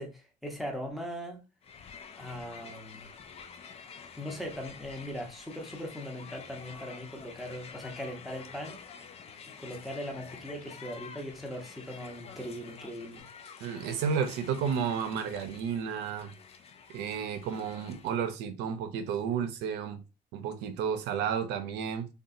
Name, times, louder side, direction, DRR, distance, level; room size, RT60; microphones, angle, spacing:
voice 1, 0.0-1.4 2.2-3.1 4.1-8.8 9.6-13.2, equal, ahead, 0.8 m, -39 dB
Crowd, 1.6-18.3, left 6 dB, 35° left, 0.4 m, -49 dB
voice 2, 13.6-16.3 16.9-20.0 20.3-22.1, right 7 dB, 80° right, 0.5 m, -32 dB
2.7 x 2.3 x 2.6 m
cardioid pair, 105°, 17 cm